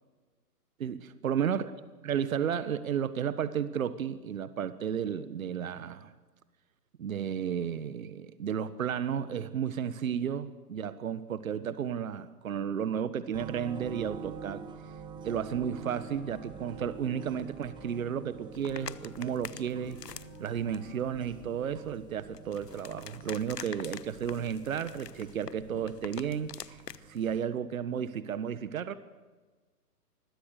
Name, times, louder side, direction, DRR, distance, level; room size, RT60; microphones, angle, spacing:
voice 1, 1.2-1.7 2.0-6.1 7.0-14.6 15.2-20.0 20.4-26.8 27.1-28.9, right 8 dB, 60° right, 14 dB, 1.6 m, -33 dB
sound 1, 13.3-27.4, right 5 dB, 10° right, 1.3 m, -47 dB
Wind instrument woodwind instrument, 15.8-18.0 18.3-21.4, left 5 dB, 20° left, 6.5 m, -57 dB
sound 2, 18.5-27.4, left 7 dB, 80° left, 1.3 m, -47 dB
27.0 x 21.5 x 6.8 m, 1.3 s
hypercardioid pair, 140°, 48 cm